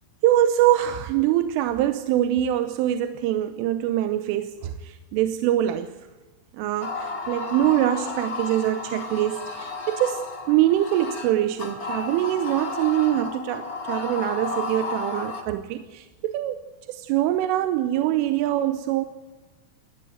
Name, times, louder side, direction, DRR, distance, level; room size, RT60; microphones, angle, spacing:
voice 1, 0.2-6.0 6.5-16.6 16.9-19.1, right 12 dB, 85° right, 10 dB, 3.4 m, -24 dB
sound 1, 6.8-15.4, left 3 dB, 40° left, 1.2 m, -33 dB
19.0 x 15.0 x 9.5 m, 1.2 s
omnidirectional pair, 5.6 m